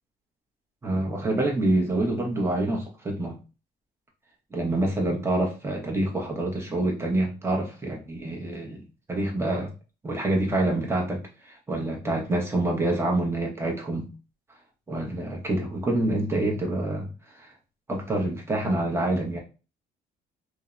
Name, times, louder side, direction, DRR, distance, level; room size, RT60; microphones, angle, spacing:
voice 1, 0.8-3.4 4.5-9.7 10.0-14.1 14.9-17.1 17.4-17.5 17.9-19.4, right 1 dB, 15° right, 0 dB, 0.8 m, -27 dB
2.6 x 2.1 x 2.4 m, 0.31 s
cardioid pair, 110°, 17 cm